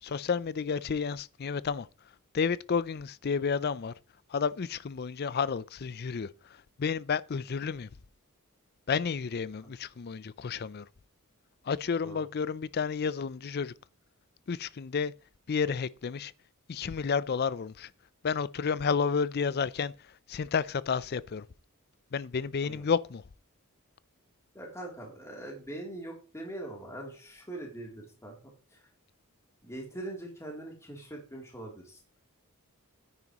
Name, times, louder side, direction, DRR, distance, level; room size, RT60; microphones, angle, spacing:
voice 1, 0.0-1.9 2.3-3.9 4.3-7.9 8.9-10.9 11.6-13.7 14.5-15.1 15.5-16.3 16.7-17.9 18.2-21.5 22.1-23.2, left 6 dB, 45° left, 0.4 m, -31 dB
voice 2, 24.5-28.4 28.7-28.8 29.6-32.0, right 1 dB, 15° left, 3.0 m, -42 dB
9.6 x 9.1 x 3.0 m
head